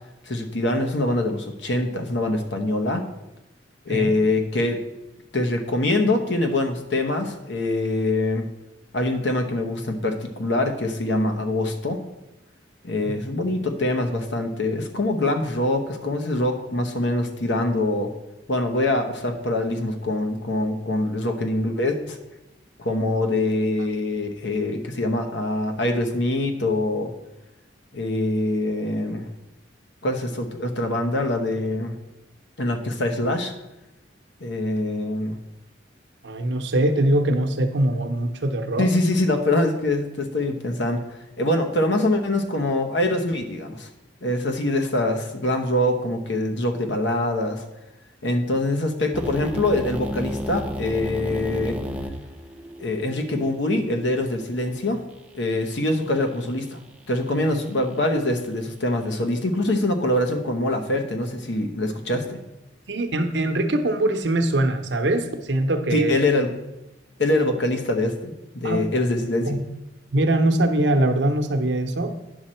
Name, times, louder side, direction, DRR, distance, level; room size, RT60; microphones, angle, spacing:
voice 1, 0.3-3.0 3.8-4.8 5.3-8.5 8.9-12.0 12.8-18.1 18.5-22.2 22.8-27.1 27.9-29.3 30.0-32.0 32.6-33.5 34.4-35.4 38.8-43.9 44.2-47.6 48.2-51.8 52.8-55.0 55.3-56.8 57.1-62.4 65.9-66.5 67.2-69.6, left 1 dB, 75° left, 5 dB, 1.0 m, -24 dB
voice 2, 36.2-38.9 62.9-66.1 68.6-68.8 69.5-69.6 70.1-72.1, right 1 dB, 70° right, 5 dB, 0.8 m, -22 dB
sound 1, 49.1-55.1, equal, 10° right, 0.5 m, -33 dB
9.3 x 6.3 x 4.4 m, 0.96 s
head